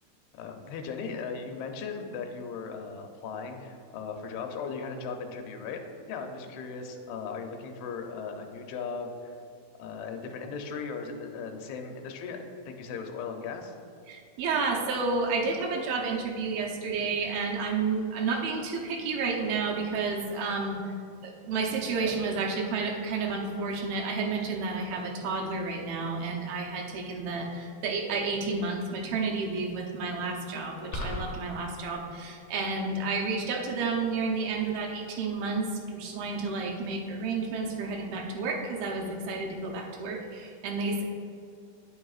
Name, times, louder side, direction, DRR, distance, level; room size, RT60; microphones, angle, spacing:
voice 1, 0.3-9.4 9.8-13.7, left 5 dB, 85° left, 4 dB, 2.8 m, -37 dB
voice 2, 14.1-20.8 21.2-41.0, right 4 dB, 75° right, 0 dB, 2.6 m, -31 dB
sound 1, 30.9-31.4, left 1 dB, 70° left, 2.2 m, -33 dB
8.9 x 8.9 x 2.4 m, 2.4 s
omnidirectional pair, 4.6 m